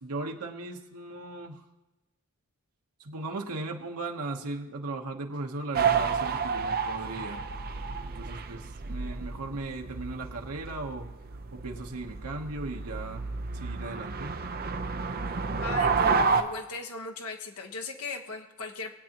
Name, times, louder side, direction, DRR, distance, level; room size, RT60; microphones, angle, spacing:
voice 1, 0.0-1.6 3.0-7.4 8.0-11.1 11.5-13.2 13.5-14.4, right 2 dB, 80° right, 2 dB, 1.1 m, -37 dB
sound 1, 5.7-16.4, right 5 dB, 45° right, 0.7 m, -30 dB
voice 2, 15.6-18.9, left 3 dB, 75° left, 3 dB, 1.2 m, -38 dB
21.5 x 8.6 x 3.0 m, 1.0 s
head